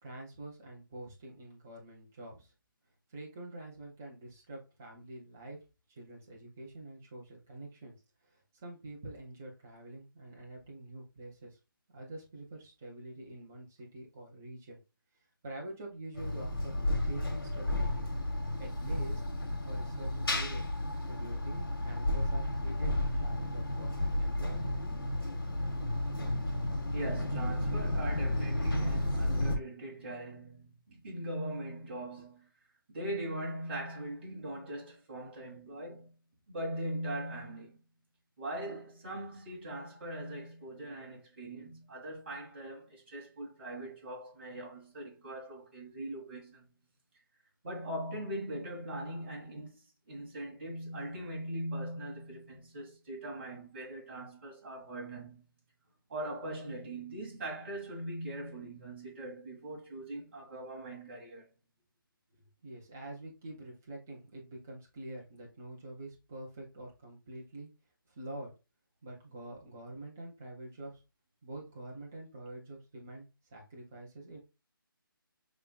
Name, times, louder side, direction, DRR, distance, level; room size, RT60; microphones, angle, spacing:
voice 1, 0.0-2.5 3.1-5.6 5.9-8.0 8.3-11.6 11.9-14.8 15.4-18.1 18.6-19.2 19.6-20.6 21.1-25.0 62.6-67.7 68.1-68.5 69.0-71.0 71.4-74.4, right 1 dB, 5° right, 0.3 m, -46 dB
sound 1, 16.1-29.6, left 1 dB, 90° left, 1.5 m, -32 dB
voice 2, 26.9-32.5 32.9-36.1 36.5-37.8 38.4-46.7 47.6-55.4 56.1-61.5, right 1 dB, 30° right, 1.8 m, -41 dB
6.7 x 3.3 x 2.3 m
hypercardioid pair, 170°, 12 cm